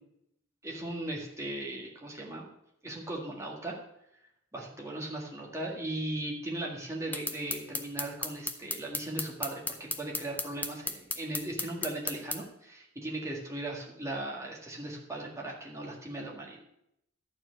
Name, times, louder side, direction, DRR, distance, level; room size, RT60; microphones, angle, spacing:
voice 1, 0.6-2.5 2.8-3.8 4.5-16.6, right 1 dB, 15° right, -1 dB, 1.8 m, -38 dB
sound 1, 7.1-12.4, left 3 dB, 10° left, 0.5 m, -34 dB
12.0 x 4.5 x 7.8 m, 0.79 s
head